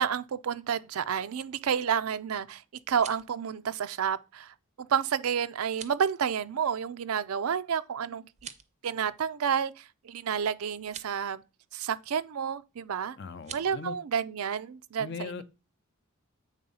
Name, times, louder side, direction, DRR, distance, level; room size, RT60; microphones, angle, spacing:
voice 1, 0.0-2.6 2.9-4.5 4.9-8.2 8.8-11.4 11.7-13.2 13.5-15.1, right 7 dB, 85° right, 0.5 m, -30 dB
sound 1, 2.8-3.4 5.6-6.0 8.3-8.8 10.8-11.1 13.4-13.7, right 8 dB, 30° right, 0.5 m, -45 dB
voice 2, 13.2-14.0 15.0-15.4, left 5 dB, 50° left, 0.6 m, -39 dB
8.1 x 3.6 x 5.5 m
head